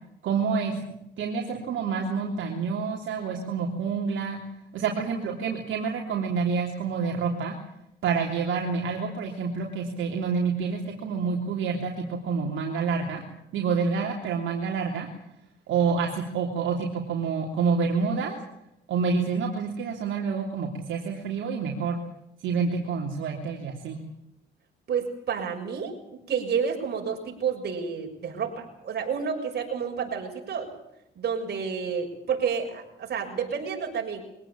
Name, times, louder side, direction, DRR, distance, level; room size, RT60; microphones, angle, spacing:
voice 1, 0.2-4.4 4.7-7.6 8.0-13.2 13.5-15.1 15.7-18.4 18.9-22.0 22.4-24.0, right 5 dB, 75° right, 0 dB, 3.3 m, -28 dB
voice 2, 24.9-30.7 31.2-34.2, right 6 dB, 55° right, 1 dB, 6.9 m, -30 dB
23.5 x 18.0 x 8.7 m, 0.82 s
cardioid pair, 90°, 20 cm